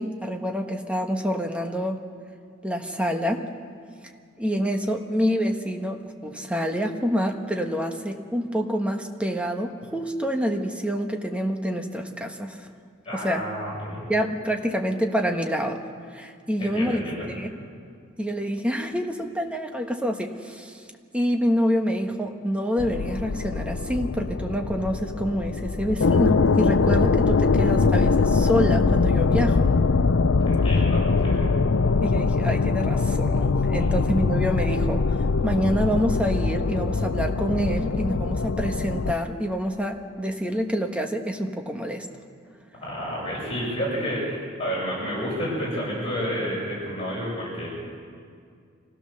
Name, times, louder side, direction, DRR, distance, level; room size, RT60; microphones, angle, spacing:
voice 1, 0.0-2.0 2.6-3.5 4.4-12.6 13.1-13.4 14.1-15.8 16.1-17.0 17.3-17.5 18.2-20.8 21.1-29.6 32.0-35.2 35.4-42.1, equal, 5° right, 3 dB, 1.3 m, -27 dB
voice 2, 13.0-14.0 16.6-17.3 30.4-31.5 42.8-47.7, equal, 30° left, -6 dB, 7.4 m, -30 dB
sound 1, 22.8-39.1, left 4 dB, 75° left, 0.6 m, -22 dB
26.0 x 16.5 x 6.7 m, 2.2 s
head